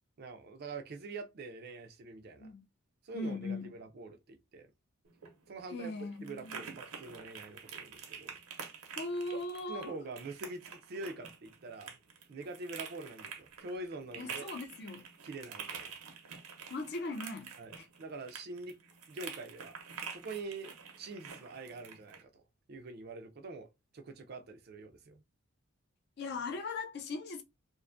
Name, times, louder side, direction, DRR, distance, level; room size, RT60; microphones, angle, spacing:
voice 1, 0.2-2.5 3.0-4.7 5.5-8.4 9.7-12.0 12.3-14.5 15.2-15.9 17.6-18.8 19.1-20.7 21.0-22.4 22.7-23.7 23.9-25.2, right 3 dB, 45° right, 0.3 m, -45 dB
voice 2, 3.1-3.7 5.7-6.6 8.9-10.0 14.2-15.1 16.7-17.9 26.2-27.4, left 2 dB, 45° left, 0.3 m, -39 dB
sound 1, 5.0-22.2, right 6 dB, 80° right, 0.6 m, -47 dB
2.5 x 2.2 x 2.4 m
head